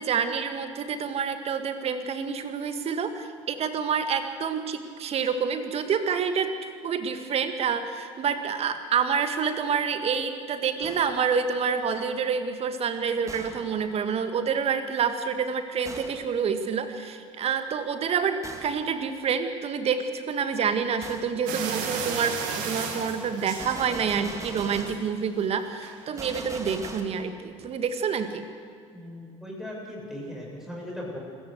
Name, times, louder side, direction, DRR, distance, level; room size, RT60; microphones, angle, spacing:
voice 1, 0.0-6.6 6.8-28.4, right 6 dB, 40° right, 8 dB, 2.1 m, -28 dB
Gunshot gunfire, 10.8-11.3 13.3-13.8 15.8-16.3 18.4-18.9 21.0-21.4 23.6-25.1 26.2-27.0, right 2 dB, 20° right, 2.7 m, -40 dB
sound 1, 21.5-24.3 24.7-25.1 25.8-26.0 26.3-26.4, right 6 dB, 60° right, 2.8 m, -34 dB
voice 2, 28.9-31.2, left 1 dB, 5° right, -3 dB, 7.6 m, -38 dB
25.0 x 14.5 x 8.2 m, 2.3 s
figure-of-eight pair, 65°, 16 cm